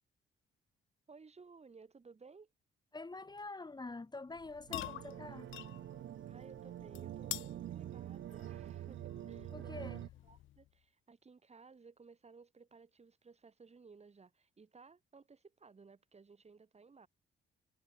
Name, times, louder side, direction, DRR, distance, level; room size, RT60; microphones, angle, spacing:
voice 1, 1.1-2.5 6.3-9.9 10.2-17.1, right 4 dB, 30° right, 7.5 m, -59 dB
voice 2, 2.9-5.5 9.5-10.0, left 3 dB, 20° left, 5.1 m, -46 dB
sound 1, 4.3-10.7, left 14 dB, 75° left, 1.1 m, -49 dB
sound 2, 4.7-10.1, right 12 dB, 75° right, 3.1 m, -46 dB
cardioid pair, 90°, 20 cm